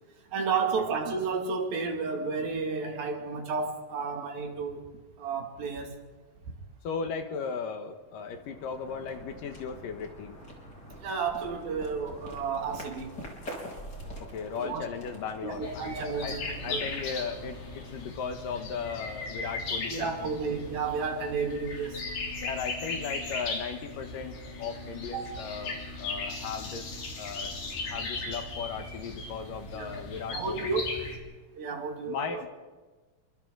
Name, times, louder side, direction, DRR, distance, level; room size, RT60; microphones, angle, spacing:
voice 1, 0.3-4.8 5.2-6.0 11.0-13.1 14.5-14.8 15.4-16.9 19.9-22.1 25.1-25.3 29.7-30.0 30.3-30.9 31.6-32.4, right 5 dB, 70° right, 2 dB, 4.1 m, -32 dB
voice 2, 6.8-10.4 14.2-15.8 16.2-16.4 16.6-20.3 22.4-27.5 27.9-30.8 32.1-32.5, left 6 dB, 70° left, 6 dB, 2.8 m, -37 dB
sound 1, 8.1-18.8, equal, 25° left, 4.4 m, -45 dB
sound 2, 15.6-31.2, left 3 dB, 90° left, 5.6 m, -37 dB
29.0 x 24.0 x 3.9 m, 1.3 s
omnidirectional pair, 4.4 m